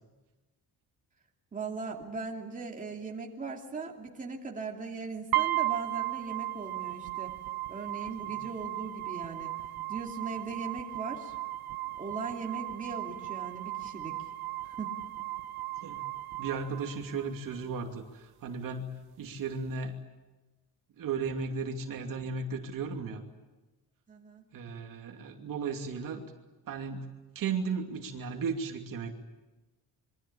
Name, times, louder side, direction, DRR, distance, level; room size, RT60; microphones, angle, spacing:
voice 1, 1.5-7.3 7.7-9.5 9.9-11.3 12.0-14.2 14.6-15.0 24.1-24.4, right 4 dB, 20° right, 0 dB, 2.8 m, -39 dB
sound 1, 5.3-17.3, right 17 dB, 70° right, 1.3 m, -36 dB
voice 2, 16.4-18.9 19.2-19.9 21.0-23.2 24.5-26.2 26.7-27.1 27.3-29.1, right 5 dB, 55° right, 3 dB, 2.8 m, -35 dB
27.0 x 24.0 x 8.8 m, 1.2 s
cardioid pair, 170°, 38 cm